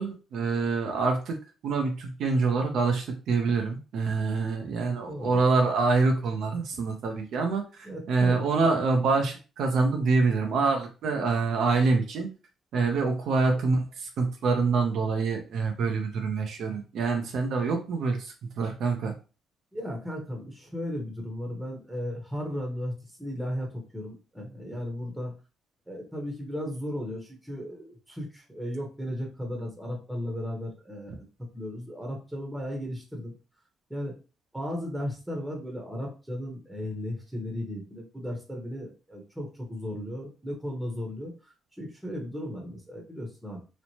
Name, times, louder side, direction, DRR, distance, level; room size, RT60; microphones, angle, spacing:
voice 1, 0.0-1.4 1.6-12.3 12.7-19.1, right 4 dB, 75° right, 3 dB, 0.5 m, -26 dB
voice 2, 4.7-5.4 7.8-8.4 19.7-25.3 25.9-33.3 33.9-34.1 34.5-43.6, equal, 5° right, 0 dB, 0.9 m, -35 dB
3.0 x 2.0 x 2.7 m, 0.33 s
cardioid pair, 90°, 0 cm